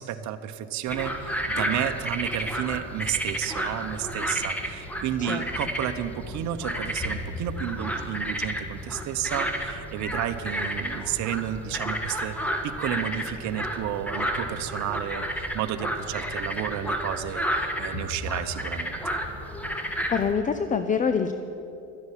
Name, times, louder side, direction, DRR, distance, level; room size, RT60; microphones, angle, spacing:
voice 1, 0.0-12.4 12.6-19.0, right 11 dB, 50° right, 7 dB, 1.0 m, -31 dB
sound 1, 0.9-20.3, equal, 5° left, 1.6 m, -31 dB
voice 2, 20.1-21.3, left 6 dB, 20° left, 9 dB, 0.7 m, -25 dB
12.5 x 10.0 x 10.0 m, 2.9 s
supercardioid pair, 105°, 36 cm